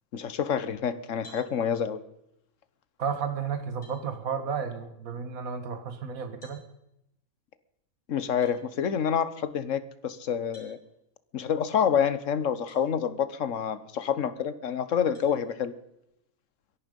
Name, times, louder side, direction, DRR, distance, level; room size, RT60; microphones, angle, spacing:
voice 1, 0.1-2.0 8.1-10.8 11.3-15.7, left 8 dB, 65° left, 14 dB, 1.3 m, -28 dB
sound 1, 1.2-1.5 3.2-3.3 3.8-4.0 6.4-6.6 8.4-8.6 10.5-10.8 12.7-12.8 13.5-13.6 15.1-15.3, left 1 dB, 40° left, 6.4 m, -52 dB
voice 2, 3.0-6.6, right 6 dB, 75° right, 9 dB, 1.9 m, -32 dB
22.5 x 11.5 x 5.3 m, 0.81 s
omnidirectional pair, 1.5 m